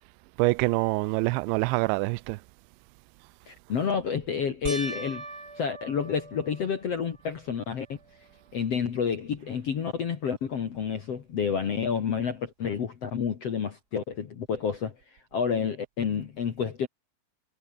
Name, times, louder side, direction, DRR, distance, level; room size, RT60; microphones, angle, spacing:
voice 1, 0.4-2.4, right 24 dB, 85° right, 2.9 m, -25 dB
voice 2, 3.5-5.2 5.6-8.0 8.5-14.9 15.3-16.9, left 6 dB, 50° left, 1.9 m, -29 dB
sound 1, 4.7-7.3 7.9-8.4 8.8-8.9 12.1-12.2, right 3 dB, 20° right, 5.0 m, -41 dB
omnidirectional pair, 5.2 m